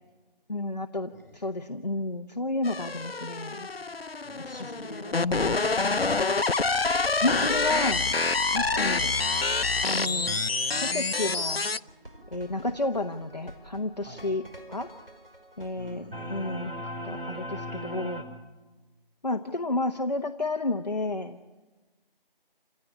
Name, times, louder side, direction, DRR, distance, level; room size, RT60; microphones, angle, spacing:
voice 1, 0.5-3.7 7.2-8.1 8.5-9.1 9.8-10.4 10.8-11.7 12.3-14.4 14.7-14.9 15.6-16.7 17.0-18.3 19.2-21.4, left 2 dB, 45° left, 6 dB, 1.0 m, -31 dB
voice 2, 1.1-1.5 4.2-6.2 14.0-14.3 15.8-16.6, left 1 dB, 20° left, -6 dB, 7.9 m, -46 dB
sound 1, 2.6-11.8, left 3 dB, 90° left, 0.8 m, -27 dB
sound 2, 11.9-18.2, equal, 70° right, 5.0 m, -40 dB
28.0 x 17.5 x 9.9 m, 1.2 s
figure-of-eight pair, 170°, 29 cm